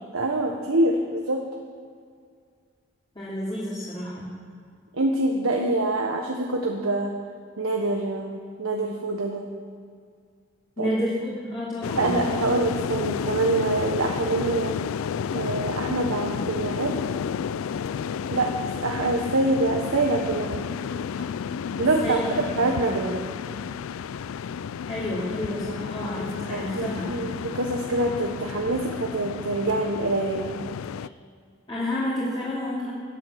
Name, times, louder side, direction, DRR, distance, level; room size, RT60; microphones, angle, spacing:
voice 1, 0.1-1.5 4.9-7.1 7.6-9.5 10.8-10.9 12.0-14.8 15.3-17.0 18.3-20.6 21.8-23.2 26.5-30.6, right 2 dB, 85° right, 1 dB, 1.3 m, -25 dB
voice 2, 3.1-4.3 10.8-12.2 21.8-22.6 24.9-27.1 31.7-32.9, left 1 dB, 20° left, -9 dB, 2.8 m, -30 dB
sound 1, 11.8-31.1, left 7 dB, 80° left, 0.3 m, -31 dB
12.0 x 9.6 x 7.8 m, 2.1 s
head